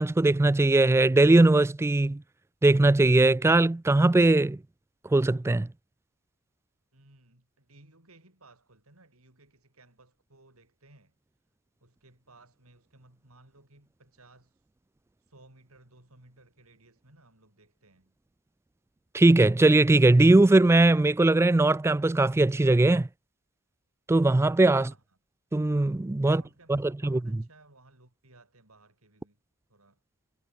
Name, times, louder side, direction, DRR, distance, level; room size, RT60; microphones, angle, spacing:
voice 1, 0.0-2.2 2.6-4.6 5.1-5.7 19.1-23.1 24.1-24.9 25.5-26.4 26.7-27.2, right 2 dB, 10° right, 0.3 m, -20 dB
voice 2, 6.9-11.1 11.8-14.6 15.2-18.2 24.8-25.2 26.2-29.4 29.7-30.0, right 2 dB, 80° right, 5.4 m, -58 dB
head